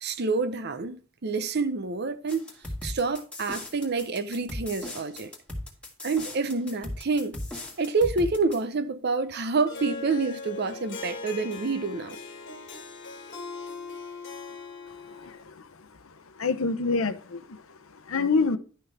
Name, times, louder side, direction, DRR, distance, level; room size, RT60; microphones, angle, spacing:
voice 1, 0.0-2.5 2.8-5.3 6.0-7.4 7.8-12.2, right 4 dB, 50° right, 0.7 m, -28 dB
sound 1, 2.3-8.6, left 1 dB, 5° left, 1.8 m, -37 dB
Harp, 9.7-15.5, left 4 dB, 60° left, 1.4 m, -40 dB
voice 2, 15.2-15.7 16.4-17.6 18.1-18.6, left 4 dB, 85° left, 0.8 m, -26 dB
11.0 x 5.8 x 3.4 m
head